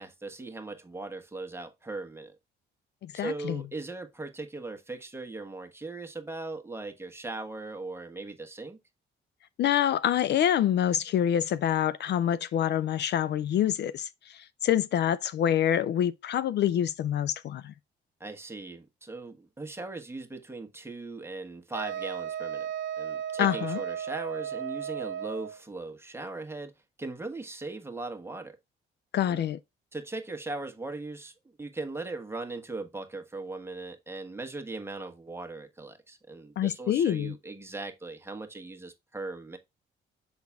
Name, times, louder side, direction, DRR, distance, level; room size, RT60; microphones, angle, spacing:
voice 1, 0.0-2.3 3.1-8.8 18.2-22.7 23.0-26.7 27.0-28.6 29.3-29.5 29.9-39.6, right 3 dB, 10° right, 1.3 m, -39 dB
voice 2, 3.0-3.6 9.6-17.7 23.4-23.8 29.1-29.6 36.6-37.3, left 10 dB, 60° left, 0.4 m, -26 dB
Wind instrument woodwind instrument, 21.7-25.6, right 9 dB, 70° right, 0.7 m, -35 dB
7.1 x 3.9 x 3.5 m
cardioid pair, 90°, 20 cm